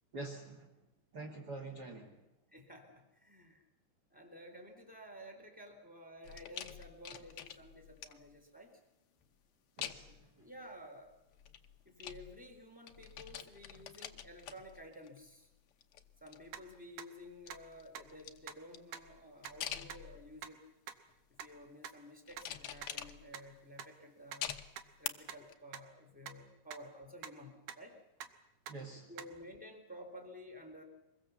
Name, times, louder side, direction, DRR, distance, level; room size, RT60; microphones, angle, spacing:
voice 1, 0.1-0.7 1.1-2.2 9.8-10.1 28.7-29.1, right 2 dB, 35° right, 1 dB, 2.0 m, -45 dB
voice 2, 2.5-3.6 4.1-8.7 10.4-11.1 11.9-15.5 16.2-20.6 21.4-24.5 25.0-28.0 29.1-30.8, equal, ahead, 3 dB, 3.5 m, -53 dB
sound 1, 6.2-8.4 9.8-10.3 11.3-12.6 12.9-15.3 15.7-16.8 17.3-20.5 21.1-21.5 22.3-23.6 24.4-25.1 25.5-25.6, left 10 dB, 85° left, 1.2 m, -46 dB
sound 2, 16.5-16.6 17.0-17.1 17.5-17.6 17.9-18.0 18.5-18.6 18.9-19.0 19.4-19.5 19.9-20.0 20.4-20.5 20.9-21.0 21.4-21.5 21.8-21.9 22.4-22.5 22.8-22.9 23.3-23.4 23.8-23.9 24.3-24.4 24.8-24.9 25.3-25.4 25.7-25.8 26.3-26.4 26.7-26.8 27.2-27.3 27.7-27.8 28.2-28.3 28.7-28.8 29.2-29.3, right 9 dB, 70° right, 2.5 m, -44 dB
25.0 x 21.5 x 7.2 m, 0.93 s
omnidirectional pair, 4.0 m